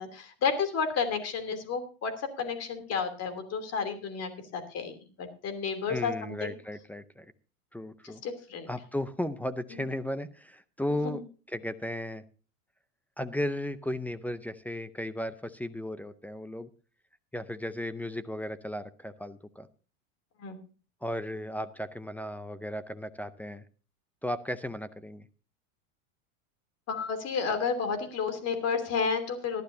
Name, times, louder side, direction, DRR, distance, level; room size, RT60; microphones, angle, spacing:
voice 1, 0.0-6.5 8.0-8.7 11.0-11.1 20.4-20.6 26.9-29.6, left 5 dB, 35° left, 8 dB, 3.0 m, -31 dB
voice 2, 5.9-7.3 7.7-8.2 8.7-11.2 11.5-12.2 13.2-16.7 17.3-19.7 21.0-23.6 24.2-25.3, left 1 dB, 5° left, 13 dB, 0.5 m, -35 dB
18.5 x 12.0 x 2.7 m, 0.36 s
supercardioid pair, 120°, 42 cm